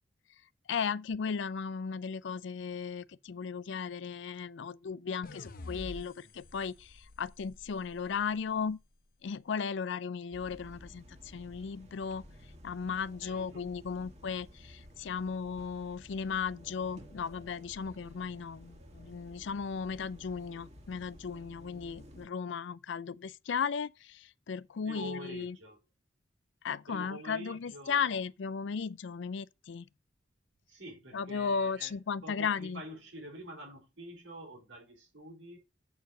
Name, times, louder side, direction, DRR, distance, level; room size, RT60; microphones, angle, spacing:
voice 1, 0.7-8.8 9.2-12.2 12.6-25.5 26.6-29.8 31.1-32.8, left 6 dB, 70° left, 0.4 m, -36 dB
sound 1, 5.2-8.5, left 2 dB, 50° left, 0.8 m, -48 dB
sound 2, 10.3-22.3, equal, 35° right, 1.5 m, -53 dB
voice 2, 13.2-13.7 24.8-25.8 26.9-28.2 30.7-35.6, right 1 dB, 90° right, 4.1 m, -46 dB
7.7 x 4.6 x 6.3 m
head